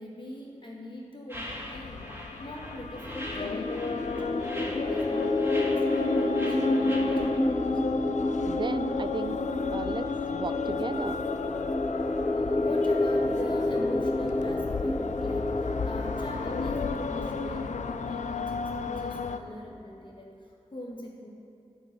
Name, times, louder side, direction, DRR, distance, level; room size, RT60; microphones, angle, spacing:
voice 1, 0.0-2.1 2.4-7.8 12.3-21.3, left 1 dB, 40° left, -2 dB, 1.6 m, -42 dB
sound 1, 1.3-19.4, left 5 dB, 70° left, 0.5 m, -34 dB
sound 2, 1.3-7.4, equal, 20° right, 2.0 m, -42 dB
sound 3, 2.9-18.6, left 2 dB, 20° left, 0.4 m, -29 dB
voice 2, 8.4-9.4 9.7-11.2, right 4 dB, 40° right, 13 dB, 0.4 m, -35 dB
11.5 x 5.7 x 7.2 m, 2.6 s
cardioid pair, 45°, 13 cm